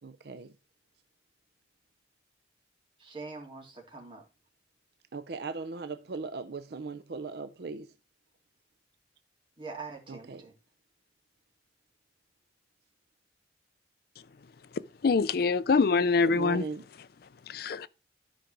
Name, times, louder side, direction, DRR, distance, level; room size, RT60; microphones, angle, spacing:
voice 1, 0.0-0.5 5.1-7.9 10.1-10.4 16.2-16.8, right 4 dB, 60° right, 0.5 m, -38 dB
voice 2, 3.0-4.2 9.6-10.5, right 4 dB, 30° right, 3.3 m, -43 dB
voice 3, 15.0-16.6 17.5-17.9, left 4 dB, 55° left, 0.4 m, -24 dB
13.0 x 5.2 x 4.6 m
head